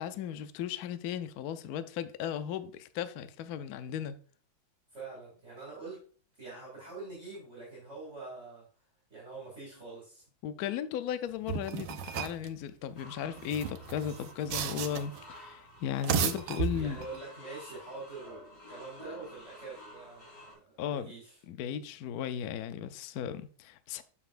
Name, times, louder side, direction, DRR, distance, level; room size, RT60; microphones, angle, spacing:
voice 1, 0.0-4.2 10.4-17.0 20.8-21.1 21.5-24.0, left 9 dB, 75° left, 0.8 m, -36 dB
voice 2, 4.9-6.0 6.4-8.6 9.1-10.2 16.7-21.4, right 3 dB, 35° right, 2.8 m, -45 dB
sound 1, 11.5-12.5 13.4-15.2 15.9-17.2, right 7 dB, 80° right, 1.5 m, -34 dB
sound 2, 13.0-20.5, equal, 45° left, 2.6 m, -51 dB
7.0 x 6.9 x 2.5 m
omnidirectional pair, 2.2 m